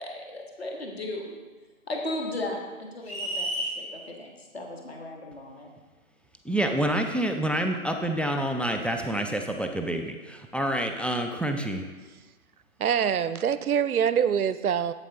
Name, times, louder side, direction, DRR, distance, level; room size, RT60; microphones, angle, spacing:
voice 1, 0.0-1.4 1.9-3.5 3.7-5.7, left 1 dB, 45° left, 0 dB, 1.4 m, -36 dB
sound 1, 3.0-3.8, right 1 dB, 25° left, 2.3 m, -30 dB
voice 2, 6.5-11.8, right 1 dB, 5° left, 3 dB, 0.3 m, -28 dB
voice 3, 12.8-14.9, right 8 dB, 80° right, 14 dB, 0.5 m, -24 dB
8.0 x 7.9 x 2.9 m, 1.3 s
figure-of-eight pair, 170°, 43 cm